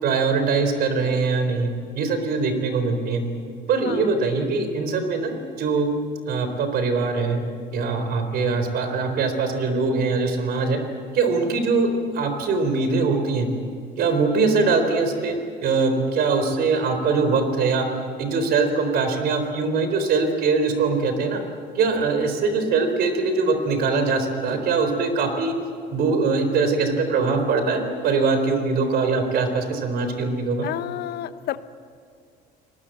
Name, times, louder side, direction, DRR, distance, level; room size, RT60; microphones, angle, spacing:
voice 1, 0.0-3.2 3.7-5.9 6.3-7.5 7.7-10.8 11.1-13.5 14.0-17.9 18.2-21.4 21.7-25.5 25.9-30.7, right 4 dB, 65° right, 7 dB, 4.1 m, -22 dB
voice 2, 30.6-31.6, left 13 dB, 70° left, 12 dB, 1.0 m, -30 dB
29.5 x 19.5 x 7.9 m, 2.2 s
cardioid pair, 110°, 17 cm